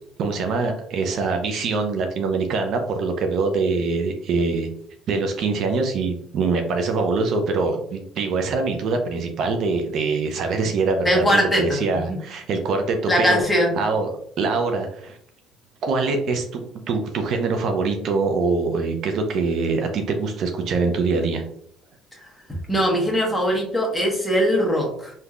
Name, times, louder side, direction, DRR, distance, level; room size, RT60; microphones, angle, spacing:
voice 1, 0.2-4.7 5.1-13.4 13.8-15.2 15.8-21.4, right 4 dB, 60° right, 5 dB, 0.5 m, -24 dB
voice 2, 11.0-11.8 12.1-12.2 13.1-13.8 22.7-25.1, equal, 5° left, -2 dB, 1.2 m, -21 dB
3.6 x 2.7 x 2.4 m, 0.68 s
cardioid pair, 105°, 0 cm